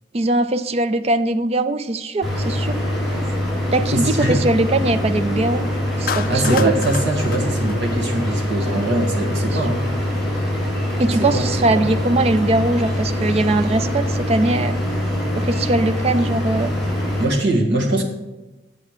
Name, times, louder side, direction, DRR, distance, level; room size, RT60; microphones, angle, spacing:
voice 1, 0.1-2.8 3.7-5.7 6.0-6.7 11.0-14.8 15.4-16.7, right 2 dB, 35° right, 12 dB, 0.4 m, -20 dB
sound 1, 2.2-17.2, left 1 dB, ahead, 2.9 m, -23 dB
voice 2, 3.9-4.4 6.3-9.8 11.1-11.9 17.2-18.0, right 1 dB, 90° right, 0 dB, 1.7 m, -22 dB
Clapping, 6.1-8.5, left 7 dB, 55° left, 0.4 m, -30 dB
8.6 x 7.5 x 4.8 m, 1.0 s
head